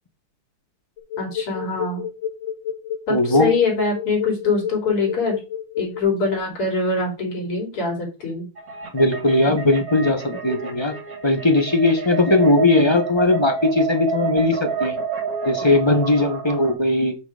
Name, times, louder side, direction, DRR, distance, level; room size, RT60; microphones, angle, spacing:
sound 1, 1.0-6.0, left 9 dB, 55° left, 2.5 m, -29 dB
voice 1, 1.2-2.0 3.1-5.4 5.8-8.4, left 4 dB, 85° left, 1 dB, 4.0 m, -23 dB
voice 2, 3.1-3.5 8.9-10.9 11.2-15.0 15.4-17.2, left 2 dB, 20° left, 5 dB, 0.9 m, -18 dB
sound 2, 8.6-16.7, right 5 dB, 45° right, 1.9 m, -29 dB
6.2 x 6.1 x 5.0 m, 0.30 s
omnidirectional pair, 2.4 m